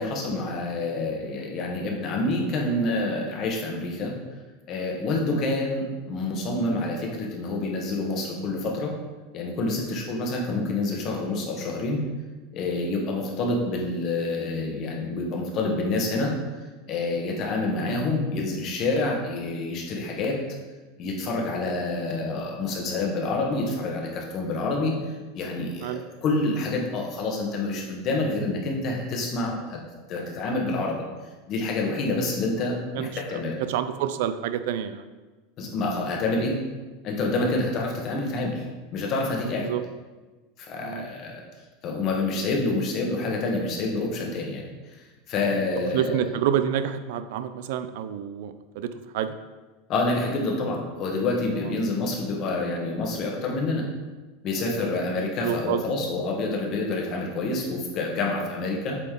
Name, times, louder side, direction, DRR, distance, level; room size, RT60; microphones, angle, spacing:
voice 1, 0.0-4.1 4.7-8.9 9.3-12.0 12.5-16.3 16.9-20.4 21.0-25.0 25.3-29.8 30.1-31.0 31.5-33.6 35.6-36.6 37.0-38.6 38.9-39.7 40.6-41.4 41.8-44.7 45.3-46.2 49.9-53.9 54.4-59.0, left 2 dB, 35° left, 0 dB, 1.2 m, -27 dB
voice 2, 32.9-33.4 33.7-35.0 37.5-37.6 39.6-39.8 40.8-41.1 45.9-49.4 51.6-51.8 54.8-54.9 55.4-55.8, right 9 dB, 65° right, 11 dB, 0.4 m, -28 dB
8.1 x 4.0 x 3.7 m, 1.2 s
supercardioid pair, 165°, 0 cm